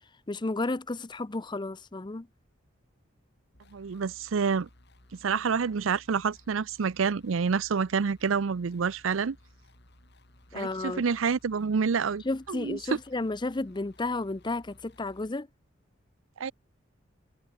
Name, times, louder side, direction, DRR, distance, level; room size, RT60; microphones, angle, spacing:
voice 1, 0.3-2.3 10.5-11.0 12.2-15.5, left 2 dB, 25° left, 0.6 m, -32 dB
sound 1, 3.5-15.3, left 1 dB, 60° left, 6.9 m, -58 dB
voice 2, 3.7-4.7 5.2-9.4 10.5-12.2 12.5-12.8 16.4-16.5, right 5 dB, 90° right, 0.5 m, -28 dB
head